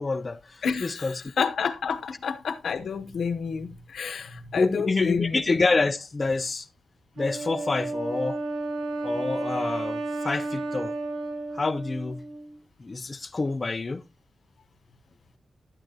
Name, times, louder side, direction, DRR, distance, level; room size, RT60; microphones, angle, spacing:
voice 1, 0.0-1.1 4.6-6.7 7.2-8.4 9.0-10.9 11.5-12.2 12.8-14.0, left 3 dB, 30° left, 0.4 m, -27 dB
voice 2, 0.6-5.4, left 6 dB, 70° left, 0.8 m, -29 dB
Wind instrument woodwind instrument, 7.2-12.6, right 2 dB, 90° right, 1.9 m, -32 dB
12.0 x 9.0 x 2.8 m
wide cardioid pair, 145°, 0 cm